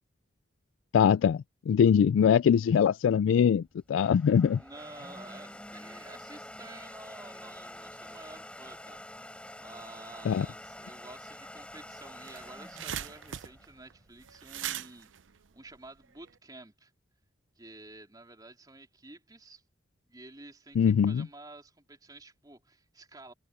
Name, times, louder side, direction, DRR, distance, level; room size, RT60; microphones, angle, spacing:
voice 1, 0.9-4.6 10.3-10.5 20.8-21.3, left 7 dB, 90° left, 0.3 m, -23 dB
Domestic sounds home sounds, 3.6-14.3, left 1 dB, 5° left, 4.7 m, -47 dB
voice 2, 4.4-9.0 9.6-15.1 15.5-16.9 17.6-19.6 20.1-23.3, right 2 dB, 20° right, 3.7 m, -50 dB
sound 1, 11.7-11.8 12.0-16.3, right 10 dB, 85° right, 0.6 m, -40 dB
head